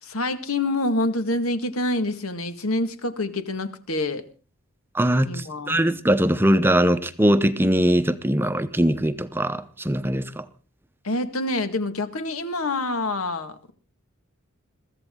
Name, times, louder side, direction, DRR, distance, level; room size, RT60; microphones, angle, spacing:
voice 1, 0.0-4.2 5.3-5.8 11.0-13.6, left 2 dB, 85° left, 1.8 m, -26 dB
voice 2, 4.9-10.4, equal, 10° right, 0.7 m, -21 dB
22.5 x 14.5 x 3.8 m
head